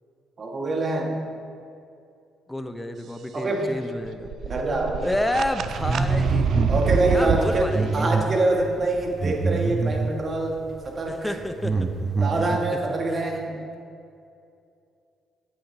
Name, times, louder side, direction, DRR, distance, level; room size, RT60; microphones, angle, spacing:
voice 1, 0.4-1.2 3.3-3.7 4.4-5.1 6.7-7.7 7.9-11.4 12.2-13.5, right 2 dB, 45° right, 1 dB, 1.5 m, -25 dB
voice 2, 2.5-4.3 5.0-6.6 7.1-8.1 11.1-11.9 13.5-13.6, left 1 dB, 10° left, 8 dB, 0.6 m, -29 dB
sound 1, 4.1-7.6, right 6 dB, 65° right, 0.3 m, -25 dB
sound 2, 5.9-6.8 7.1-10.2 10.8-11.0 11.3-12.6, right 3 dB, 30° right, 0.7 m, -25 dB
8.6 x 8.5 x 2.7 m, 2.5 s
hypercardioid pair, 50°, 0 cm